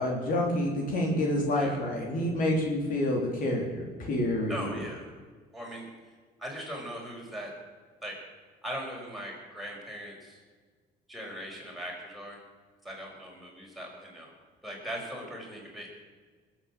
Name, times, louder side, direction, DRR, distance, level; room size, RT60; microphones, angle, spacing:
voice 1, 0.0-4.6, left 1 dB, 55° left, 0 dB, 3.7 m, -28 dB
voice 2, 4.5-5.1 5.5-5.9 6.4-7.5 8.0-8.2 8.6-10.4 11.1-12.4 12.8-14.3 14.6-15.9, equal, ahead, -2 dB, 5.5 m, -39 dB
20.5 x 8.4 x 7.6 m, 1.5 s
cardioid pair, 110°, 17 cm